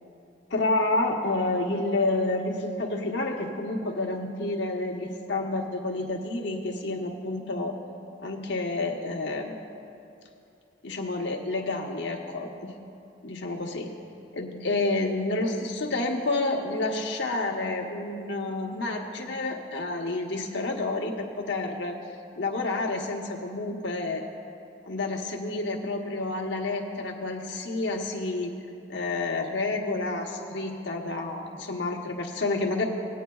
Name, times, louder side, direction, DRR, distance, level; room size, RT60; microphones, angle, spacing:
voice 1, 0.5-7.8 8.2-9.5 10.8-12.7 13.2-13.9 14.3-22.0 22.4-24.2 24.9-28.5 28.9-32.8, left 2 dB, 75° left, 0 dB, 1.1 m, -29 dB
18.5 x 9.3 x 2.3 m, 2.6 s
head